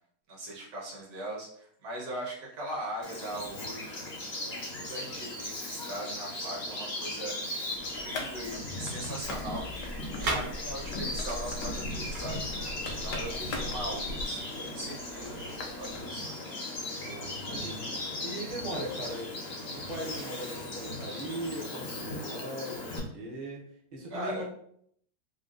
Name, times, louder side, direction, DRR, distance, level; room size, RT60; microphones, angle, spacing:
voice 1, 0.3-9.9 10.3-12.7 13.0-16.6 24.1-24.4, right 1 dB, 65° right, -3 dB, 1.5 m, -40 dB
Bird vocalization bird call bird song, 3.0-23.0, left 1 dB, 50° left, 0.8 m, -38 dB
sound 1, 7.7-16.1, left 3 dB, 80° left, 1.2 m, -44 dB
sound 2, 9.2-14.3, right 1 dB, 90° right, 1.5 m, -38 dB
voice 2, 17.0-17.9 18.2-19.3 19.7-23.6 23.9-24.4, right 1 dB, 45° right, -3 dB, 0.6 m, -39 dB
3.6 x 2.2 x 2.4 m, 0.66 s
omnidirectional pair, 1.9 m